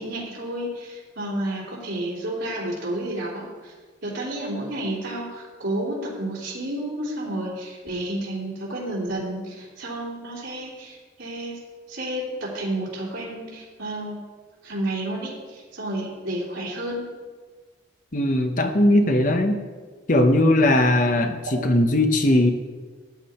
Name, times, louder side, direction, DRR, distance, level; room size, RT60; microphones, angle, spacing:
voice 1, 0.0-3.7 4.0-11.6 11.9-14.2 14.6-17.1, right 1 dB, 85° right, -6 dB, 3.1 m, -31 dB
voice 2, 18.1-19.6 20.1-22.5, left 1 dB, 45° left, 6 dB, 1.0 m, -19 dB
13.0 x 8.4 x 4.3 m, 1.4 s
head